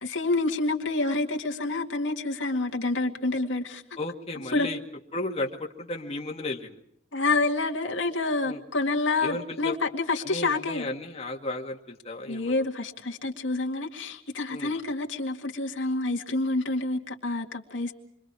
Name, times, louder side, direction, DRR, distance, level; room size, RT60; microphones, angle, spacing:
voice 1, 0.0-3.8 4.5-4.7 7.1-10.9 12.3-17.9, left 3 dB, 90° left, 2 dB, 2.2 m, -28 dB
voice 2, 4.0-4.8 5.1-6.8 8.5-8.6 9.2-9.8 10.3-12.7 14.5-14.7, left 2 dB, 35° left, 1 dB, 2.0 m, -34 dB
28.5 x 23.5 x 4.8 m, 0.70 s
head